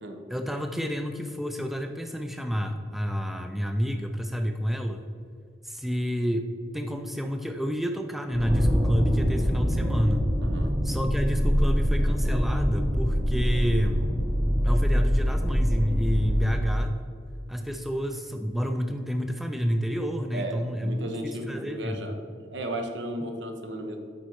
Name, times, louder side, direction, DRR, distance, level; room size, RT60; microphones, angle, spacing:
voice 1, 0.3-5.0 5.6-10.3 10.8-14.2 14.6-16.9 17.5-22.1, equal, ahead, 6 dB, 0.3 m, -29 dB
sound 1, 8.3-16.6, equal, 20° right, 0.8 m, -24 dB
voice 2, 10.4-10.7 20.3-22.2 22.5-24.0, right 1 dB, 75° right, 4 dB, 1.0 m, -34 dB
8.5 x 5.4 x 4.6 m, 2.3 s
head